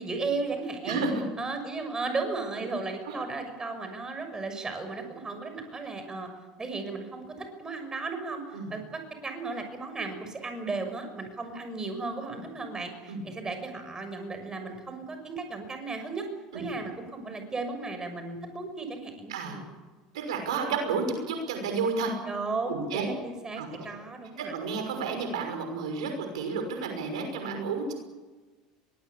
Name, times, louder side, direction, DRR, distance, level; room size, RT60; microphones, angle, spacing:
voice 1, 0.0-1.0 1.4-6.3 6.6-16.3 16.5-19.7 22.3-24.5, right 3 dB, 20° right, 6 dB, 6.4 m, -35 dB
voice 2, 0.9-1.2 3.1-3.2 8.5-8.7 13.1-13.2 16.5-16.7 19.3-19.6 20.1-22.1 22.7-23.1 23.6-23.7 24.4-27.9, right 4 dB, 85° right, 5 dB, 5.8 m, -31 dB
24.0 x 19.5 x 8.5 m, 1.3 s
hypercardioid pair, 90°, 3 cm